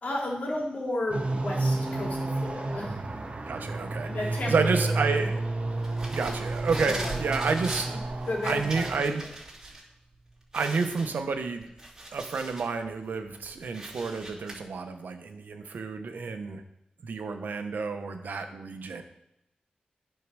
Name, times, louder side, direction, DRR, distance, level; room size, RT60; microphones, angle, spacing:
voice 1, 0.0-3.0 4.0-5.3 6.8-7.4 8.3-8.9, left 1 dB, 60° left, -2 dB, 2.8 m, -33 dB
sound 1, 1.1-9.0, right 2 dB, 45° right, 1.0 m, -31 dB
voice 2, 3.5-4.1 4.5-5.4 6.1-8.0 8.4-9.2 10.5-11.7 12.1-16.6 17.0-19.0, right 4 dB, 90° right, 6 dB, 1.0 m, -30 dB
sound 2, 5.8-9.8 10.1-10.2 10.5-12.7 13.2-14.5, right 2 dB, 20° right, 2.8 m, -40 dB
9.6 x 4.6 x 6.2 m, 0.83 s
wide cardioid pair, 85°, 3 cm